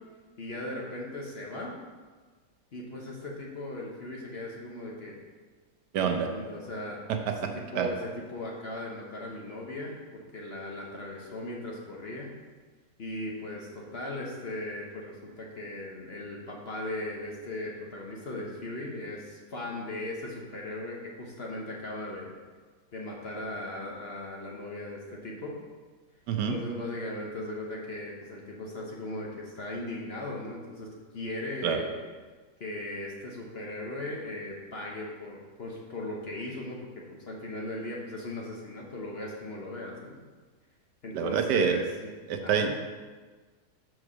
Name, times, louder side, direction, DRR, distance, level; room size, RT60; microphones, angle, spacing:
voice 1, 0.4-1.7 2.7-5.2 6.0-12.3 13.0-22.3 22.9-25.5 26.5-32.0 32.6-40.2 41.0-41.8 42.4-42.7, left 1 dB, 45° left, -2 dB, 1.0 m, -38 dB
voice 2, 5.9-6.3 7.1-7.3 7.7-7.9 26.3-26.6 31.6-31.8 41.1-41.8 42.3-42.8, right 7 dB, 80° right, 5 dB, 1.3 m, -26 dB
6.2 x 4.7 x 6.1 m, 1.4 s
omnidirectional pair, 1.8 m